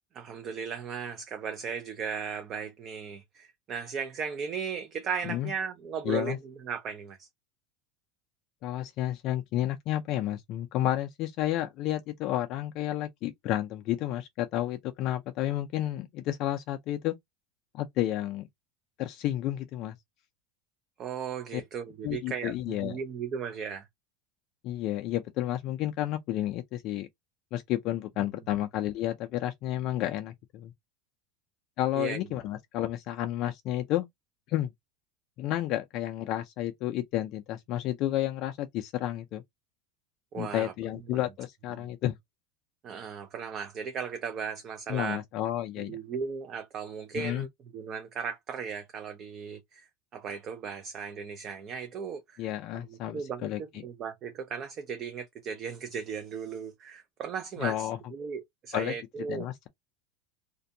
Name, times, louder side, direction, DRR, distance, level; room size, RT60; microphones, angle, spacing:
voice 1, 0.1-7.3 21.0-23.9 28.2-28.3 31.9-32.3 40.3-40.7 41.1-41.2 41.8-41.9 42.8-45.2 45.8-52.4 52.7-59.5, right 6 dB, 35° right, 0.4 m, -36 dB
voice 2, 6.1-6.4 8.6-17.2 17.7-18.5 19.0-20.0 21.5-21.6 22.0-23.0 24.6-27.1 27.5-30.7 31.8-34.1 34.5-34.7 35.4-39.4 40.4-42.1 44.9-46.0 47.1-47.5 52.4-53.8 57.6-58.0 58.7-58.9 59.3-59.7, left 13 dB, 45° left, 0.3 m, -31 dB
2.5 x 2.1 x 2.6 m
supercardioid pair, 155°, 0 cm